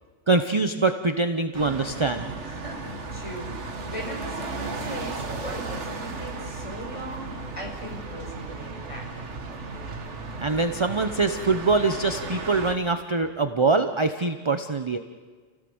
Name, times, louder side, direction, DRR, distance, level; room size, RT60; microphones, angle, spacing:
voice 1, 0.3-2.3 10.4-15.0, right 3 dB, 25° right, 8 dB, 0.8 m, -24 dB
sound 1, 1.5-12.7, right 3 dB, 70° right, 1.8 m, -35 dB
voice 2, 2.4-9.1, right 1 dB, 25° left, 0 dB, 5.3 m, -39 dB
sound 2, 5.1-12.1, equal, 5° right, 2.8 m, -47 dB
30.0 x 17.0 x 8.0 m, 1.5 s
omnidirectional pair, 1.2 m